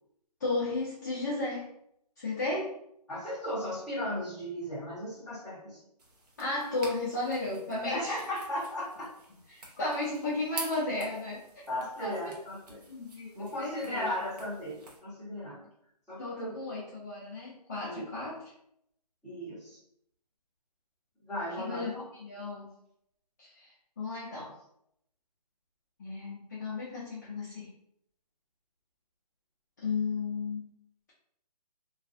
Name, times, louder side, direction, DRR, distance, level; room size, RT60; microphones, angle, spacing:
voice 1, 0.4-1.7 2.2-2.7 6.4-8.2 9.5-11.4 12.0-12.2 12.9-14.1 16.2-18.4 21.6-22.7 23.4-23.7 24.0-24.5 26.0-27.7 29.8-30.7, left 2 dB, 25° left, -7 dB, 0.4 m, -34 dB
voice 2, 3.1-5.8 7.9-9.1 11.7-12.8 13.3-15.6 16.1-16.5 17.8-18.0 19.2-19.8 21.2-22.0, left 1 dB, ahead, -13 dB, 0.8 m, -36 dB
sound 1, 6.0-15.0, right 2 dB, 70° right, 0.8 m, -48 dB
2.4 x 2.3 x 2.4 m, 0.74 s
figure-of-eight pair, 155°, 21 cm